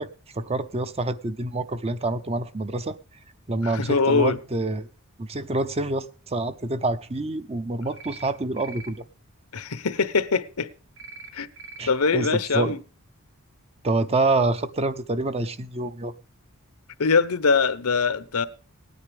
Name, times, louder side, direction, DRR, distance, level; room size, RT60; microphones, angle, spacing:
voice 1, 0.0-3.0 3.5-4.9 5.2-9.0 11.8-12.7 13.8-16.1, right 2 dB, 30° right, 0.7 m, -27 dB
voice 2, 3.6-4.4 9.5-10.7 11.3-11.5 11.9-12.8 17.0-18.5, left 4 dB, 85° left, 0.9 m, -22 dB
sound 1, 8.0-8.3 8.6-8.9 11.0-11.3 11.6-11.9, right 4 dB, 60° right, 1.4 m, -42 dB
19.0 x 9.6 x 3.5 m
head